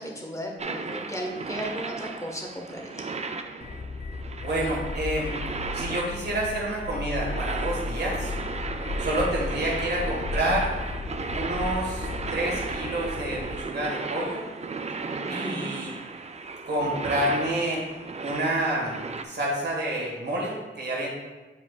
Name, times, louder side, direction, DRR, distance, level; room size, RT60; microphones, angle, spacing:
voice 1, 0.0-3.0 15.2-15.8, equal, 15° left, 0 dB, 1.3 m, -35 dB
sound 1, 0.6-19.2, right 4 dB, 35° right, 0.4 m, -35 dB
sound 2, 3.6-13.6, left 3 dB, 35° left, 0.3 m, -34 dB
voice 2, 4.4-5.3 5.7-8.3 9.0-10.7 11.3-14.4 15.3-15.9 16.6-17.8 18.2-19.0 19.2-21.1, right 1 dB, 55° right, -4 dB, 1.6 m, -28 dB
8.3 x 4.8 x 2.4 m, 1.2 s
cardioid pair, 70°, 21 cm